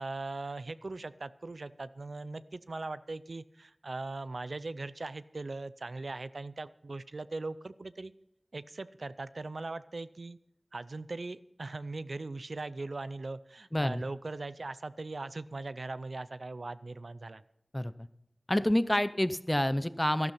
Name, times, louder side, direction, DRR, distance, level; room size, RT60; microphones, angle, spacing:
voice 1, 0.0-8.1 8.5-10.4 10.7-17.4, right 3 dB, 70° right, 15 dB, 0.5 m, -40 dB
voice 2, 13.7-14.0 17.7-18.1 18.5-20.3, left 1 dB, 15° left, 15 dB, 0.6 m, -28 dB
12.0 x 12.0 x 5.6 m, 0.78 s
wide cardioid pair, 55°, 0 cm